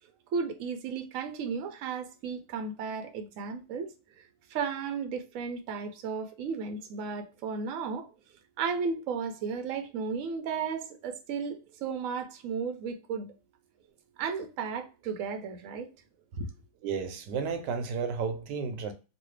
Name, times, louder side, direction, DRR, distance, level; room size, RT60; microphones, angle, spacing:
voice 1, 0.3-3.9 4.5-8.1 8.6-13.3 14.2-15.9 16.3-16.5, right 5 dB, 65° right, 0.9 m, -34 dB
voice 2, 16.8-18.9, right 5 dB, 80° right, 1.3 m, -32 dB
3.1 x 2.3 x 3.1 m
omnidirectional pair, 1.8 m